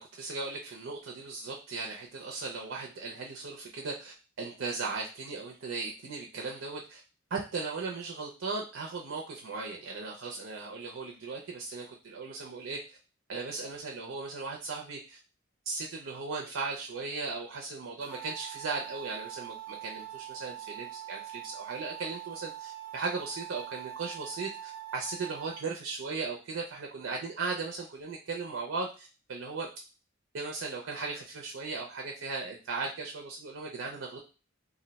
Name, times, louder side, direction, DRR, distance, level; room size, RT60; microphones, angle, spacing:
voice 1, 0.0-7.0 7.3-12.8 13.3-15.2 15.7-29.7 30.3-34.2, right 4 dB, 80° right, 0 dB, 0.5 m, -37 dB
sound 1, 18.0-25.6, right 13 dB, 10° right, 0.4 m, -43 dB
2.5 x 2.1 x 3.9 m, 0.32 s
head